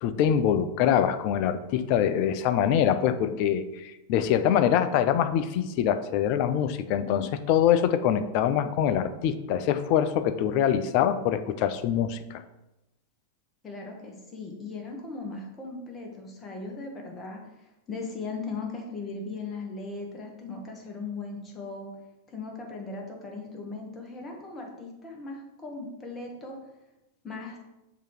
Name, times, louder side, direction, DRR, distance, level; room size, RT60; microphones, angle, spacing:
voice 1, 0.0-12.4, left 9 dB, 50° left, 11 dB, 0.4 m, -24 dB
voice 2, 13.6-21.9 22.3-26.6 27.2-27.6, left 3 dB, 20° left, 1 dB, 1.4 m, -38 dB
6.7 x 2.9 x 4.8 m, 0.97 s
figure-of-eight pair, 95°, 0 cm